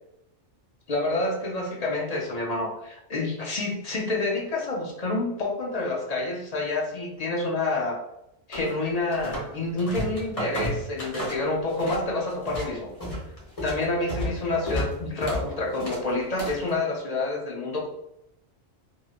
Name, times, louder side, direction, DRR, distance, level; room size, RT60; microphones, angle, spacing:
voice 1, 0.9-8.0 8.5-12.9 13.6-17.9, left 2 dB, 50° left, -1 dB, 0.5 m, -28 dB
sound 1, 8.5-9.5 9.8-12.0 12.3-16.7, equal, 35° left, 0.9 m, -32 dB
3.0 x 2.8 x 2.3 m, 0.83 s
omnidirectional pair, 1.2 m